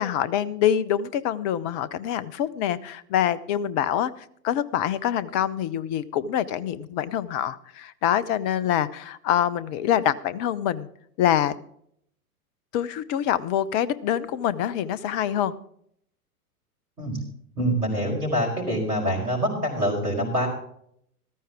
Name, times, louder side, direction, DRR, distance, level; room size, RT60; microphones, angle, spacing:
voice 1, 0.0-4.1 4.4-10.9 11.2-11.5 12.7-15.5, left 10 dB, 25° left, 18 dB, 0.6 m, -25 dB
voice 2, 17.6-20.5, equal, 80° right, -3 dB, 5.2 m, -25 dB
15.0 x 13.5 x 3.5 m, 0.68 s
figure-of-eight pair, 100°, 45 cm